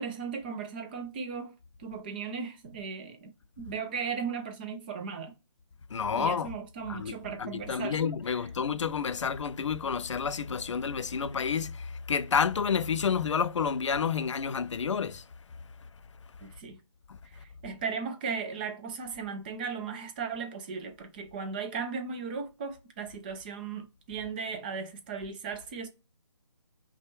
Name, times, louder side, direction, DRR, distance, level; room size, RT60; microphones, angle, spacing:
voice 1, 0.0-1.5 1.8-3.3 3.6-5.3 6.1-8.1 16.4-16.8 17.2-25.9, right 5 dB, 20° right, 0.5 m, -36 dB
voice 2, 5.9-6.5 6.9-7.1 7.4-15.2 17.1-17.2, left 6 dB, 75° left, 0.4 m, -29 dB
5.6 x 2.3 x 3.0 m
hypercardioid pair, 160°, 16 cm